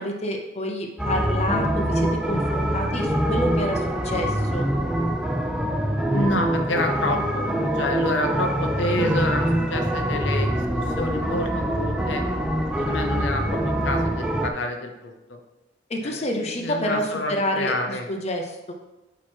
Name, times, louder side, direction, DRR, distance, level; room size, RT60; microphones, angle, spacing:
voice 1, 0.0-4.7 15.9-18.7, left 1 dB, 35° left, 2 dB, 0.7 m, -28 dB
sound 1, 1.0-14.5, right 1 dB, 5° right, 0.4 m, -24 dB
voice 2, 6.1-12.2 12.8-15.4 16.0-18.1, left 1 dB, 75° left, 5 dB, 0.7 m, -29 dB
8.9 x 3.1 x 4.4 m, 1.0 s
head